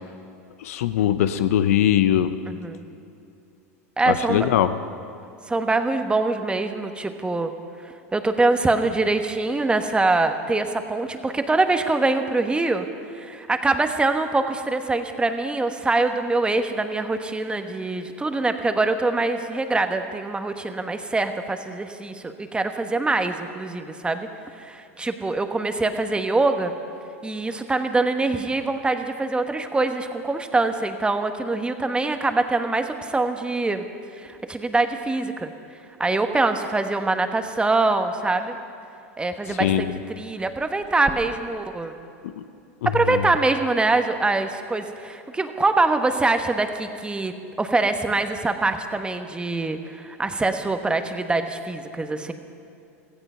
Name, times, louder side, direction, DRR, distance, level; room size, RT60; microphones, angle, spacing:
voice 1, 0.6-2.3 4.1-4.7 39.5-40.0 42.4-42.5 42.8-43.3, left 11 dB, 75° left, 11 dB, 0.8 m, -21 dB
voice 2, 2.5-2.8 4.0-4.5 5.5-7.5 8.1-12.9 13.1-24.3 24.6-26.7 27.2-33.9 34.2-35.5 36.0-38.6 39.2-41.9 42.8-52.3, right 3 dB, 10° right, 7 dB, 1.3 m, -24 dB
16.5 x 15.0 x 5.7 m, 2.6 s
hypercardioid pair, 95°, 8 cm